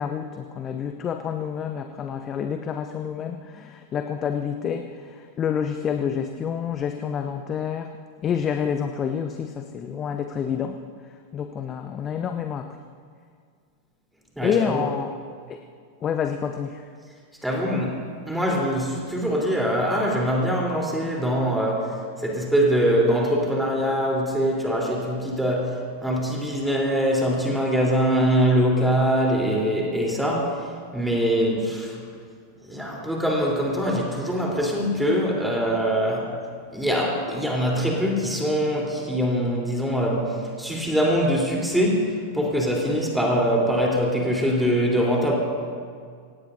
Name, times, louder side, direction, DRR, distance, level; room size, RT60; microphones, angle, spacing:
voice 1, 0.0-7.9 8.2-10.8 11.3-12.8 14.4-15.1 15.5-15.6 16.0-16.8, left 7 dB, 25° left, 6 dB, 0.9 m, -28 dB
voice 2, 14.4-14.9 17.4-30.5 30.9-31.9 32.6-36.3 36.7-45.3, equal, 5° right, -2 dB, 3.9 m, -23 dB
26.5 x 17.5 x 2.8 m, 2.1 s
figure-of-eight pair, 90°, 0 cm